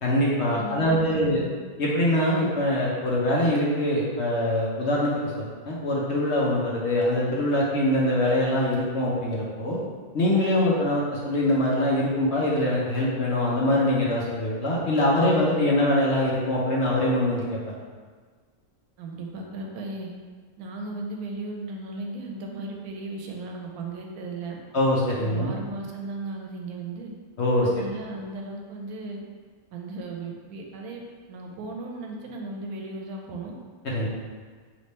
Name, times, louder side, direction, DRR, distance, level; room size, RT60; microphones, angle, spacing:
voice 1, 0.0-1.4 1.8-9.8 10.1-17.6 24.7-25.5 27.4-27.7 33.9-34.1, left 1 dB, 55° left, -5 dB, 0.9 m, -23 dB
voice 2, 0.5-1.5 19.0-20.1 20.6-24.6 25.2-27.1 27.6-29.2 29.7-31.0 31.3-33.5, right 2 dB, 85° right, 0 dB, 1.1 m, -36 dB
3.4 x 2.9 x 4.1 m, 1.5 s
omnidirectional pair, 1.5 m